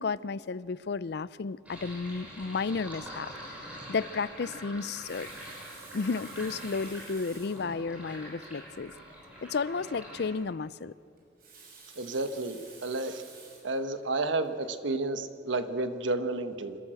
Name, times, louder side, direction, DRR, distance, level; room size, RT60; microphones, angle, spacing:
voice 1, 0.0-5.3 5.9-8.9 9.4-10.9, left 4 dB, 60° left, 19 dB, 0.5 m, -33 dB
Sink (filling or washing), 1.7-10.3, equal, 10° right, 5.6 m, -45 dB
Water tap faucet, 4.8-7.7 8.5-8.6 8.9-9.0 11.2-13.8 14.4-14.6, right 4 dB, 50° right, 5.9 m, -51 dB
voice 2, 12.0-13.2 13.6-16.8, right 2 dB, 85° right, 9 dB, 1.3 m, -31 dB
26.5 x 13.0 x 7.7 m, 2.3 s
head